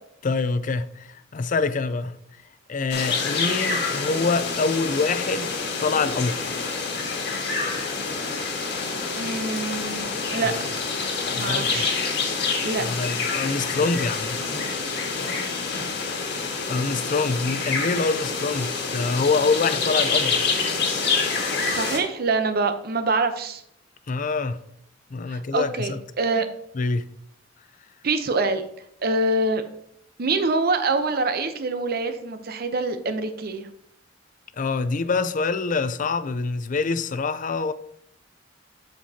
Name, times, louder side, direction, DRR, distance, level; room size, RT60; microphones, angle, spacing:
voice 1, 0.2-2.1 2.7-6.5 11.3-11.9 12.8-14.4 16.7-20.5 24.1-24.6 25.1-26.0 26.7-27.1 34.6-37.7, left 4 dB, 45° left, 0.5 m, -25 dB
sound 1, 2.9-22.0, left 4 dB, 65° left, 1.6 m, -27 dB
voice 2, 9.2-10.5 11.4-12.0 12.6-12.8 21.7-23.6 25.3-26.5 28.0-28.6 29.0-29.6 30.2-33.7, right 3 dB, 55° right, 0.7 m, -25 dB
7.4 x 7.3 x 2.8 m
head